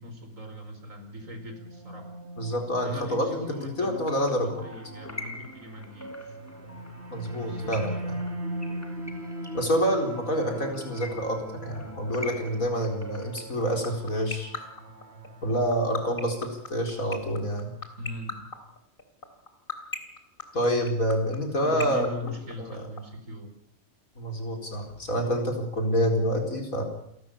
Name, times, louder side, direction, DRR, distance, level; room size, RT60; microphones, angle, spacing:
voice 1, 0.0-2.1 2.8-4.0 4.3-6.4 7.4-8.2 18.0-18.5 21.6-23.5, left 1 dB, 65° right, 6 dB, 4.8 m, -40 dB
sound 1, 1.2-16.5, right 1 dB, 50° right, 3.0 m, -40 dB
voice 2, 2.4-3.4 3.8-4.6 7.1-8.2 9.5-14.5 15.4-17.7 20.5-22.3 22.6-22.8 24.2-26.8, equal, 70° left, 3 dB, 4.9 m, -27 dB
sound 2, 3.8-13.6, left 1 dB, 10° left, 1.8 m, -44 dB
sound 3, 13.4-23.0, left 5 dB, 35° left, 3.5 m, -33 dB
29.0 x 13.5 x 8.7 m, 0.77 s
omnidirectional pair, 1.5 m